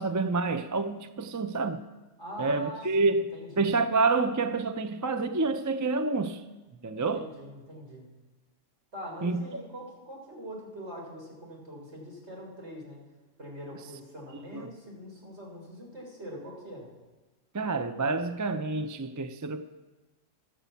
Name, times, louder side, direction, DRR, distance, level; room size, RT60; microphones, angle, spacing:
voice 1, 0.0-1.8 2.4-6.4 6.8-7.3 9.2-9.6 14.5-14.7 17.5-19.6, right 3 dB, 30° right, 0.3 m, -28 dB
voice 2, 2.2-3.7 6.9-8.1 8.9-13.0 13.4-16.9, equal, 55° right, 4.5 m, -43 dB
12.5 x 10.0 x 8.3 m
omnidirectional pair, 1.3 m